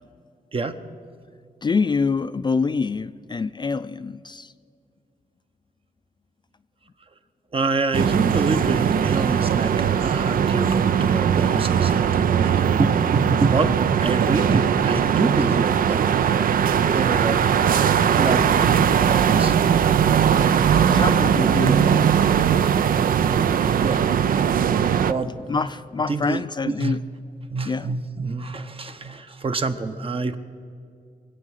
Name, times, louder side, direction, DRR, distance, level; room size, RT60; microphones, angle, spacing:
voice 1, 1.6-4.5 20.3-20.6 20.9-22.4 23.5-23.6 25.5-27.0 27.6-27.9, left 4 dB, 30° left, 12 dB, 0.4 m, -26 dB
voice 2, 7.5-16.1 16.9-17.5 18.2-19.5 19.8-20.0 20.9-21.2 21.4-21.8 23.2-24.0 25.1-25.5 26.1-27.0 27.5-30.4, right 3 dB, 40° right, 8 dB, 0.9 m, -26 dB
sound 1, 7.9-25.1, right 8 dB, 75° right, 0.5 m, -20 dB
23.5 x 8.5 x 6.5 m, 2.4 s
cardioid pair, 100°, 15 cm